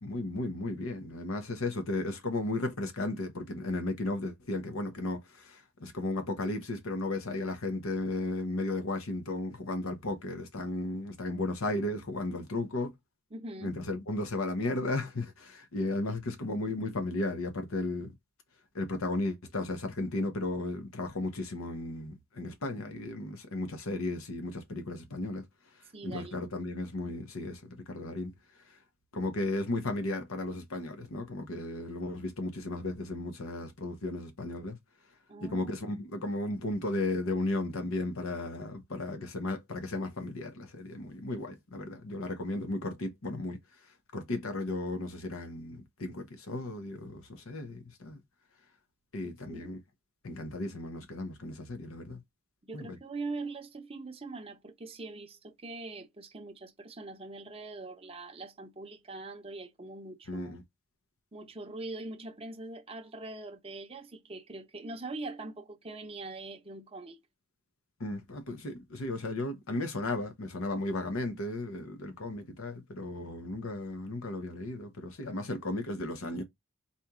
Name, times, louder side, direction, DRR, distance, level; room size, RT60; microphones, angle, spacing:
voice 1, 0.0-12.9 13.6-18.1 18.7-25.4 26.0-27.6 27.9-28.3 28.6-28.8 29.1-34.8 35.4-43.6 44.1-48.2 49.1-49.8 50.2-52.2 52.7-53.0 60.3-60.6 68.0-76.4, left 2 dB, 70° left, 0.9 m, -35 dB
voice 2, 13.3-13.8 25.9-26.5 35.3-35.7 49.2-49.7 52.6-60.6 61.3-67.2, right 2 dB, 25° right, 0.6 m, -42 dB
4.2 x 2.9 x 3.6 m
head